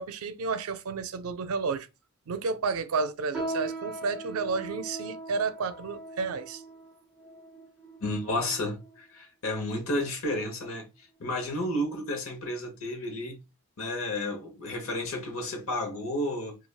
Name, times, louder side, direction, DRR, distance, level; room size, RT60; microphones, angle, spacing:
voice 1, 0.0-1.9 2.3-6.6, right 4 dB, 85° right, 0.4 m, -31 dB
sound 1, 3.3-9.0 9.7-9.8 10.5-10.8 11.2-11.4 12.1-12.2, right 2 dB, ahead, 0.7 m, -40 dB
voice 2, 8.0-13.4 13.8-16.6, left 1 dB, 75° left, 0.9 m, -32 dB
3.2 x 2.3 x 2.3 m
head